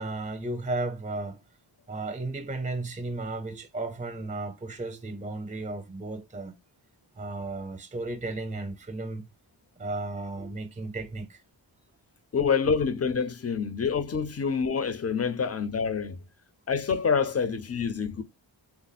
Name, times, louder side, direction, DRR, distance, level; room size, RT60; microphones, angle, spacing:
voice 1, 0.0-1.4 1.9-6.5 7.2-9.2 9.8-11.4, right 2 dB, 15° right, 0.6 m, -34 dB
voice 2, 12.3-16.2 16.7-18.2, left 6 dB, 35° left, 0.5 m, -27 dB
3.5 x 2.0 x 4.0 m
wide cardioid pair, 95°, 47 cm